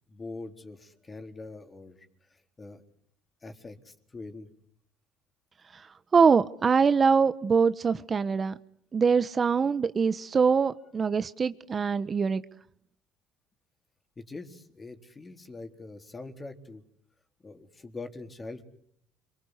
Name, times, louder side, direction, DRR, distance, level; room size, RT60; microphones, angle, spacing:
voice 1, 0.1-2.8 3.4-4.5 14.2-16.8 17.4-18.6, left 3 dB, 25° left, 6 dB, 4.1 m, -43 dB
voice 2, 6.1-8.6 8.9-12.4, right 5 dB, 35° right, 13 dB, 1.1 m, -23 dB
30.0 x 24.0 x 8.3 m, 0.70 s
supercardioid pair, 95°, 0 cm